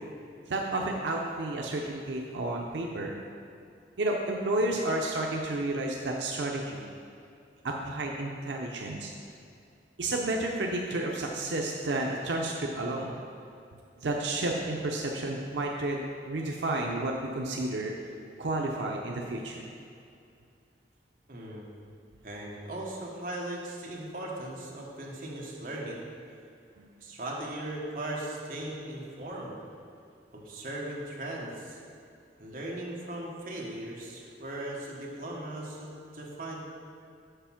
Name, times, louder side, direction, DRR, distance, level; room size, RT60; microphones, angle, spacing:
voice 1, 0.5-3.2 4.0-6.9 7.6-9.1 10.0-13.2 14.0-17.9 18.4-19.7, right 2 dB, 90° right, 0 dB, 0.6 m, -31 dB
voice 2, 21.3-21.7 22.2-26.0 27.0-29.6 30.3-31.8 32.4-36.6, right 1 dB, 50° right, -3 dB, 1.2 m, -38 dB
6.7 x 5.0 x 5.7 m, 2.5 s
head